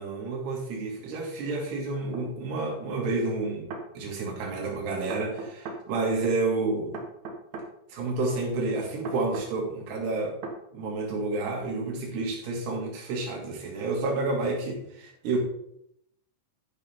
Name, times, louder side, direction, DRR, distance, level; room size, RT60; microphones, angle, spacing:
voice 1, 0.0-3.7 3.9-6.9 7.9-10.4 10.7-15.4, right 3 dB, 55° right, -1 dB, 4.4 m, -30 dB
sound 1, 2.1-2.3 3.4-3.9 5.1-5.8 6.9-7.7 9.1-9.5 10.4-10.6, right 3 dB, 75° right, 1.7 m, -37 dB
11.5 x 10.5 x 3.8 m, 0.76 s
omnidirectional pair, 6.0 m